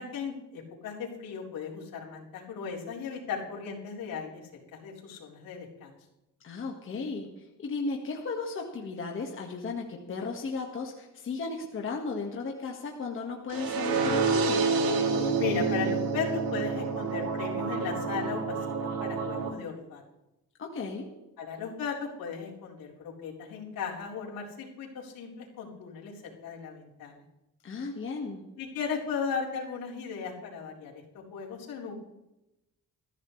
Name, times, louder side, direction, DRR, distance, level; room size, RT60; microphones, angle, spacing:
voice 1, 0.0-6.0 15.4-20.0 21.4-26.1 26.4-27.2 28.6-31.9, left 6 dB, 75° left, -3 dB, 4.3 m, -36 dB
voice 2, 6.4-14.7 20.6-21.1 27.6-28.4, left 4 dB, 35° left, 1 dB, 1.8 m, -35 dB
sound 1, 13.5-19.5, right 4 dB, 85° right, 3.0 m, -28 dB
21.5 x 14.5 x 3.3 m, 0.95 s
cardioid pair, 165°, 35 cm